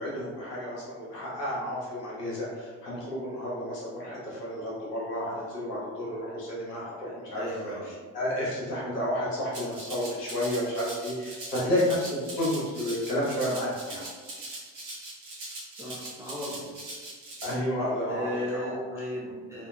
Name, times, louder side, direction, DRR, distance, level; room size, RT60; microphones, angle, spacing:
voice 1, 0.0-14.0 17.4-18.7, left 1 dB, 80° left, -6 dB, 0.9 m, -31 dB
voice 2, 7.3-7.9 11.5-11.8 15.7-16.7 18.1-19.7, left 1 dB, 5° right, -7 dB, 0.4 m, -36 dB
Rattle (instrument), 9.5-17.5, right 2 dB, 80° right, 0.7 m, -41 dB
2.9 x 2.2 x 2.2 m, 1.5 s
figure-of-eight pair, 55°, 47 cm